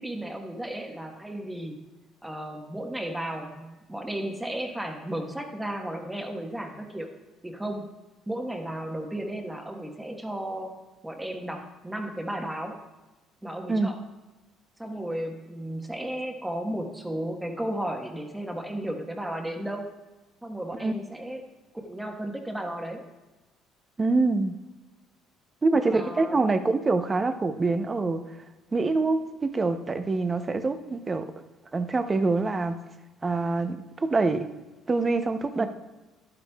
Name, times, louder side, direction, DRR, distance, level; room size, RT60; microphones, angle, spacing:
voice 1, 0.0-1.8 2.2-7.1 7.4-7.9 8.3-10.8 11.0-12.8 13.4-14.0 14.8-19.9 20.4-21.4 21.7-23.1 25.9-26.5 35.6-35.7, right 1 dB, 10° right, 3 dB, 1.2 m, -34 dB
voice 2, 24.0-24.6 25.6-28.2 28.7-31.3 31.7-32.8 33.2-34.5 34.9-35.7, right 3 dB, 25° right, 9 dB, 0.7 m, -25 dB
11.5 x 9.7 x 2.3 m, 1.1 s
cardioid pair, 100°, 0 cm